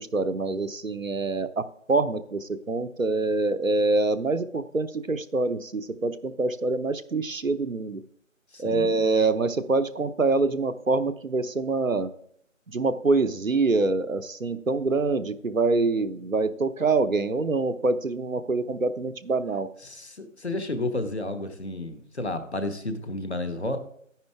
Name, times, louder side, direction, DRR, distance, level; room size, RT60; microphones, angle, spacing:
voice 1, 0.0-8.0 8.6-12.1 12.7-19.7, right 3 dB, 80° right, 11 dB, 0.9 m, -25 dB
voice 2, 8.5-9.0 19.8-23.8, left 2 dB, 55° left, 9 dB, 1.3 m, -31 dB
10.5 x 9.5 x 3.5 m, 0.68 s
figure-of-eight pair, 170°, 40 cm